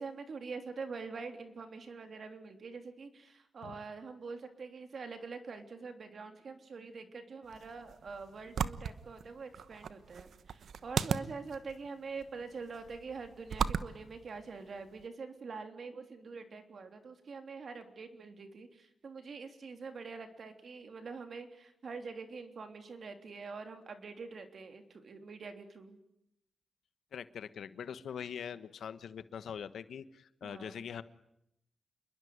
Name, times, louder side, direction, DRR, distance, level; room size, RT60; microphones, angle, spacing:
voice 1, 0.0-26.0 30.4-30.8, right 4 dB, 45° right, 7 dB, 3.4 m, -45 dB
sound 1, 7.4-15.1, right 7 dB, 70° right, 1.1 m, -39 dB
voice 2, 27.1-31.0, left 7 dB, 75° left, 13 dB, 1.3 m, -43 dB
28.0 x 21.5 x 9.6 m, 0.82 s
wide cardioid pair, 180°, 0 cm